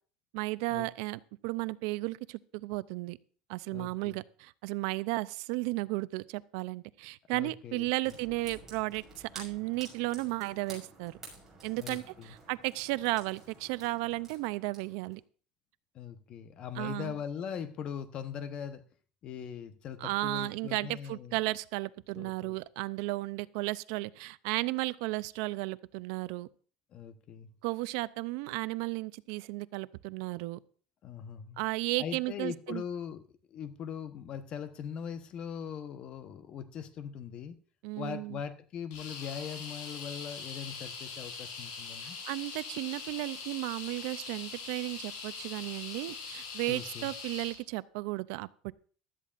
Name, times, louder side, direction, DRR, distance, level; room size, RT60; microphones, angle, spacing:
voice 1, 0.3-3.2 3.5-11.2 11.6-15.2 16.8-17.2 20.0-26.5 27.6-30.6 31.6-32.8 37.8-38.4 42.3-48.7, right 21 dB, 80° right, 0.5 m, -34 dB
voice 2, 3.7-4.2 7.3-8.1 11.7-12.3 15.9-18.8 19.2-21.4 22.2-22.6 26.9-27.5 31.0-31.6 32.0-33.2 33.5-37.5 38.0-42.2 46.7-47.1, left 8 dB, 40° left, 1.0 m, -41 dB
sound 1, 8.0-15.2, right 3 dB, 15° right, 6.2 m, -51 dB
sound 2, 38.9-47.6, left 5 dB, 90° left, 5.7 m, -42 dB
15.5 x 12.5 x 2.5 m
cardioid pair, 145°, 2 cm